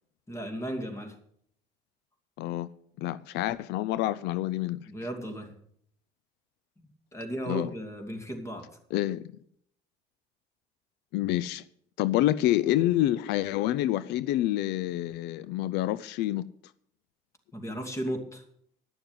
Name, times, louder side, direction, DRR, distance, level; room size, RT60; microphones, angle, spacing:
voice 1, 0.3-1.2 4.9-5.5 7.1-8.8 17.5-18.4, right 1 dB, 15° left, 2.6 m, -35 dB
voice 2, 2.4-2.7 3.0-4.9 7.5-7.7 8.9-9.2 11.1-11.6 12.0-16.4, left 14 dB, 85° left, 0.4 m, -27 dB
11.0 x 6.9 x 9.1 m
cardioid pair, 110°, 17 cm